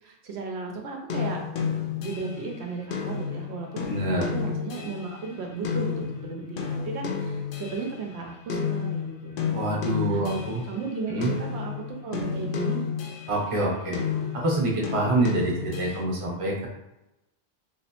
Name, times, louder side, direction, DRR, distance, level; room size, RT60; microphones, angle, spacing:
voice 1, 0.0-1.4 2.0-3.9 4.3-9.5 10.1-11.7 12.0-12.8, right 4 dB, 75° right, 1 dB, 0.8 m, -35 dB
sound 1, 1.1-8.2 8.5-10.8 11.2-13.5 13.9-16.0, left 6 dB, 60° left, 0.6 m, -31 dB
voice 2, 3.9-4.3 9.5-10.6 11.1-11.3 13.3-14.0 14.3-16.7, right 2 dB, 35° right, -2 dB, 0.8 m, -26 dB
3.2 x 3.0 x 2.9 m, 0.96 s
omnidirectional pair, 1.1 m